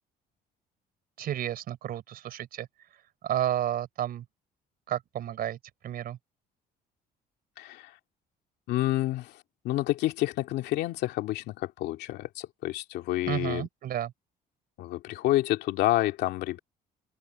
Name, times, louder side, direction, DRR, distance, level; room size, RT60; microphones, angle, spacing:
voice 1, 1.2-2.7 3.2-4.2 4.9-5.6 5.8-6.2 13.3-14.1, right 11 dB, 60° right, 4.1 m, -31 dB
voice 2, 7.6-7.9 8.7-9.3 9.6-13.7 14.8-16.6, left 15 dB, 80° left, 2.4 m, -28 dB
open air
cardioid pair, 110°, 17 cm